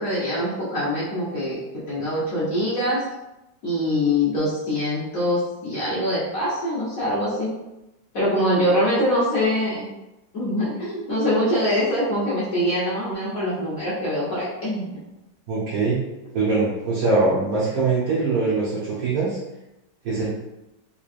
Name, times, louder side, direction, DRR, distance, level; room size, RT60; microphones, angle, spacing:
voice 1, 0.0-3.0 3.6-7.5 8.1-9.9 10.3-15.0, left 1 dB, 50° left, -9 dB, 1.3 m, -24 dB
voice 2, 15.5-16.0 16.3-19.4 20.0-20.3, right 3 dB, 55° right, -8 dB, 1.2 m, -22 dB
3.6 x 3.2 x 2.4 m, 0.93 s
omnidirectional pair, 2.0 m